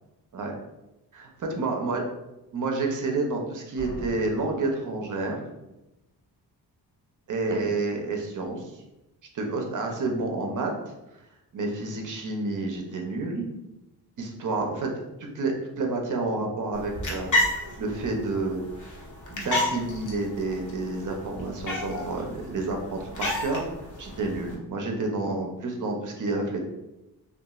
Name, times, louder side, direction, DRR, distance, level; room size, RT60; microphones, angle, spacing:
voice 1, 1.1-2.0 2.5-5.4 7.3-8.8 9.3-10.7 11.5-13.5 14.2-17.3 17.8-18.6 19.3-23.7 24.0-26.6, right 3 dB, 50° right, 2 dB, 0.6 m, -29 dB
Slam, 3.8-5.7, equal, 80° left, 1.2 m, -42 dB
sound 1, 16.7-24.6, left 1 dB, 50° left, 0.8 m, -32 dB
2.9 x 2.4 x 2.3 m, 0.95 s
cardioid pair, 100°, 40 cm